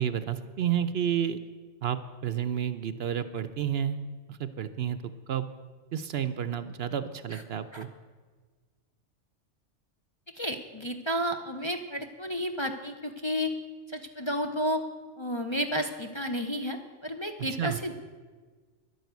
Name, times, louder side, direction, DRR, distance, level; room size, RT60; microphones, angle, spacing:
voice 1, 0.0-1.4 1.8-4.0 4.3-5.0 5.3-5.5 5.9-7.9 17.4-17.8, right 9 dB, 60° right, 12 dB, 0.8 m, -30 dB
voice 2, 10.3-13.5 13.9-14.8 15.2-17.9, equal, 30° left, 3 dB, 0.6 m, -32 dB
11.0 x 10.5 x 8.1 m, 1.5 s
omnidirectional pair, 1.3 m